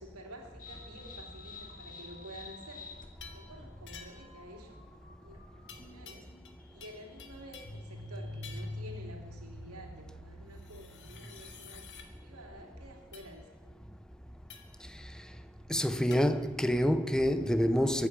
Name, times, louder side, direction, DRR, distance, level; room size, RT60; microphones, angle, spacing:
voice 1, 0.0-2.9 3.3-6.3 6.7-11.9 12.2-13.8, equal, 80° right, 3.0 m, -50 dB
sound 1, 0.6-11.2, left 2 dB, 40° left, 2.0 m, -47 dB
sound 2, 3.2-3.5 3.9-4.4 5.7-6.6 6.8-7.8 8.4-8.8 10.5-12.1 13.1-13.3 14.5-14.8 16.1-16.3, left 6 dB, 55° left, 1.8 m, -50 dB
voice 2, 15.7-18.1, equal, 5° left, 0.6 m, -27 dB
23.5 x 9.2 x 6.2 m
head